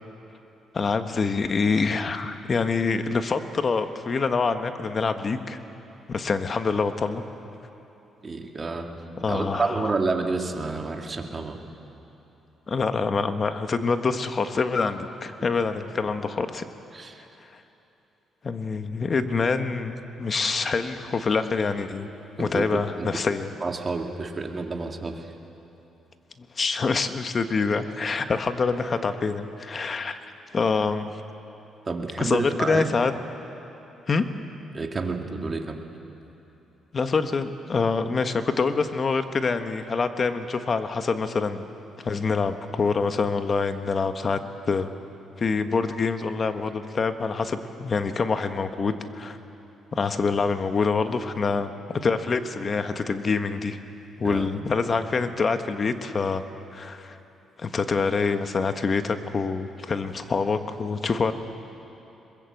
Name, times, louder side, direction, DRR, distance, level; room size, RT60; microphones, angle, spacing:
voice 1, 0.7-5.6 6.1-7.2 9.2-9.9 12.7-16.6 17.5-17.6 18.4-22.1 22.4-23.5 26.4-30.2 30.5-31.1 32.2-33.1 34.1-34.3 36.9-41.6 42.0-44.4 44.7-44.9 45.4-49.4 49.9-53.8 54.2-56.4 56.7-57.2 57.6-61.3, left 4 dB, 40° left, 8 dB, 1.4 m, -26 dB
voice 2, 8.2-9.0 9.3-11.6 16.9-17.2 22.4-23.1 23.6-25.2 31.9-32.9 34.7-35.8 54.2-54.4, right 3 dB, 30° right, 3 dB, 2.2 m, -29 dB
22.0 x 21.5 x 7.9 m, 3.0 s
cardioid pair, 90°, 0 cm